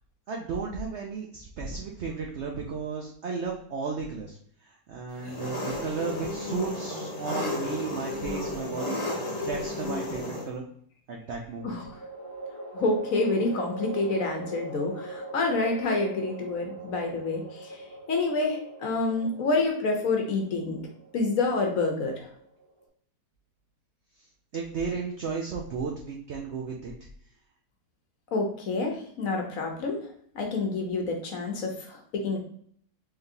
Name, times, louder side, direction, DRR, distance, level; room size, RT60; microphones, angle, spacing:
voice 1, 0.3-4.4 4.6-9.0 9.4-10.6 11.1-11.7 24.5-26.9, right 5 dB, 80° right, 0 dB, 0.6 m, -34 dB
Engine, 5.2-10.5, left 2 dB, 30° left, 0.8 m, -33 dB
sound 1, 11.5-22.8, right 2 dB, 40° right, 0.3 m, -41 dB
voice 2, 12.7-17.8 18.1-20.8 21.1-22.3 28.3-30.0 30.3-32.4, left 3 dB, 60° left, 2 dB, 1.0 m, -28 dB
3.8 x 3.4 x 2.6 m, 0.63 s
omnidirectional pair, 1.8 m